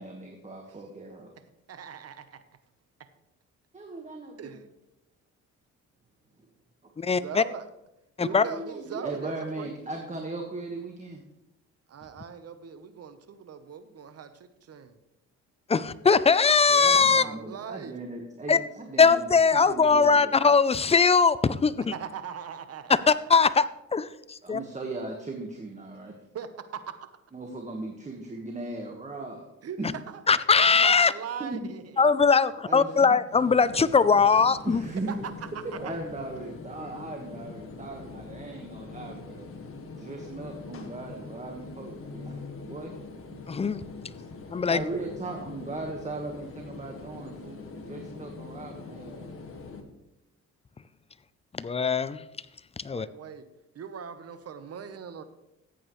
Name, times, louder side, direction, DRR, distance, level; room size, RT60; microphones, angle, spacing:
voice 1, 0.0-1.3 3.7-4.6 7.0-7.1 8.2-11.2 16.7-20.5 24.4-26.1 27.3-29.5 29.8-29.9 31.4-31.6 32.1-32.2 32.7-33.1 34.6-35.2 35.6-39.4 40.0-43.0 43.3-43.4 44.7-49.3, right 2 dB, 25° right, 2 dB, 1.5 m, -38 dB
voice 2, 1.7-2.4 4.4-4.6 7.1-7.6 8.2-9.8 11.9-14.9 16.8-18.0 21.9-23.1 26.3-27.1 29.6-29.8 30.1-32.0 35.1-35.9 52.9-53.5 53.7-55.2, right 7 dB, 55° right, 11 dB, 1.0 m, -40 dB
voice 3, 7.0-7.4 8.2-8.4 15.7-17.2 18.5-18.6 19.0-21.9 23.1-23.7 23.9-24.6 30.3-31.1 32.0-34.8 43.5-43.8 44.5-44.8 51.5-52.2 52.8-53.1, left 5 dB, 20° left, 16 dB, 0.5 m, -21 dB
sound 1, 33.3-49.8, left 4 dB, 45° left, 1.7 m, -43 dB
14.0 x 8.6 x 3.2 m, 0.88 s
cardioid pair, 90°, 30 cm